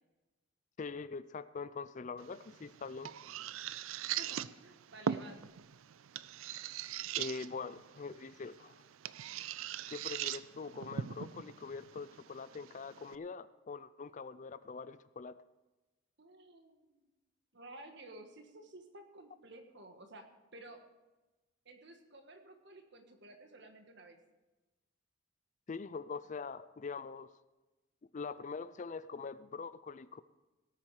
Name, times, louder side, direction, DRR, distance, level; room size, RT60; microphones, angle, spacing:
voice 1, 0.8-3.1 7.2-8.7 9.9-15.4 25.7-27.3 28.1-30.2, left 4 dB, 35° left, 15 dB, 0.4 m, -43 dB
sound 1, 2.2-13.2, right 9 dB, 80° right, 0.4 m, -42 dB
voice 2, 4.2-5.4 16.2-17.1 17.5-20.8 21.6-24.2, right 2 dB, 55° right, 5 dB, 1.6 m, -54 dB
17.5 x 8.9 x 4.8 m, 1.1 s
head